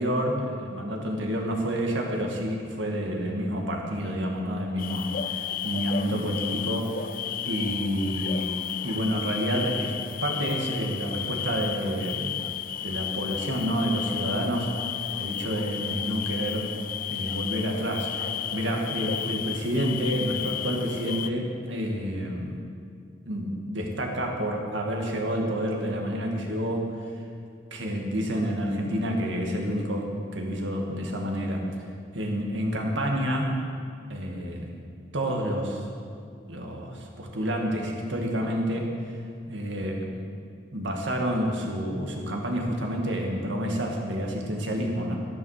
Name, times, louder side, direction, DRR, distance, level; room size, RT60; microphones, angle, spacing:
voice 1, 0.0-6.9 7.5-8.6 8.8-9.9 10.2-12.4 12.8-14.8 15.2-16.7 17.1-22.6 23.3-26.9 27.7-31.7 32.1-33.7 34.1-34.8 35.1-35.8 36.5-38.9 39.5-40.3 40.7-45.1, equal, 80° right, 1 dB, 1.9 m, -29 dB
sound 1, 4.8-21.3, left 10 dB, 45° left, 0.4 m, -33 dB
11.0 x 10.5 x 6.6 m, 2.3 s
head